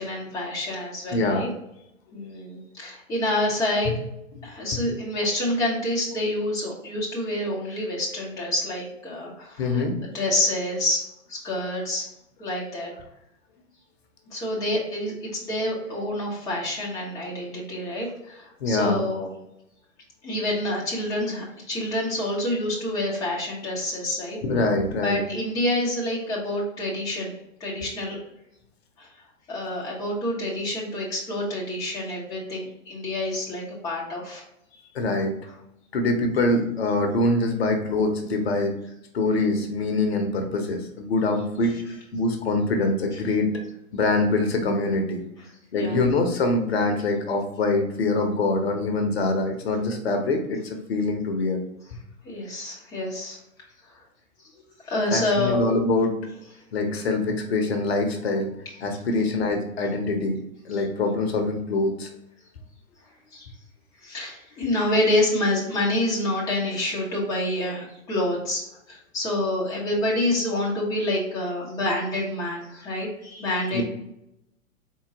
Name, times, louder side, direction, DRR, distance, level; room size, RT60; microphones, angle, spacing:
voice 1, 0.0-1.5 2.1-3.9 4.4-11.0 11.3-12.1 12.4-12.9 14.3-19.3 20.2-24.4 25.0-27.3 27.6-28.2 29.0-29.1 29.5-34.4 41.2-41.7 45.7-46.0 52.2-53.4 54.9-55.6 60.7-60.8 63.3-63.5 64.0-73.8, left 1 dB, 10° left, -4 dB, 0.7 m, -27 dB
voice 2, 1.1-1.5 4.7-4.8 9.6-9.9 18.6-19.0 24.4-25.2 34.9-35.3 35.9-38.7 39.1-43.5 43.9-45.2 45.7-51.6 55.1-56.2 56.7-58.5 58.8-60.4 60.6-62.1 73.7-73.8, left 2 dB, 50° left, 4 dB, 0.8 m, -24 dB
4.3 x 3.8 x 2.8 m, 0.83 s
figure-of-eight pair, 110°, 41 cm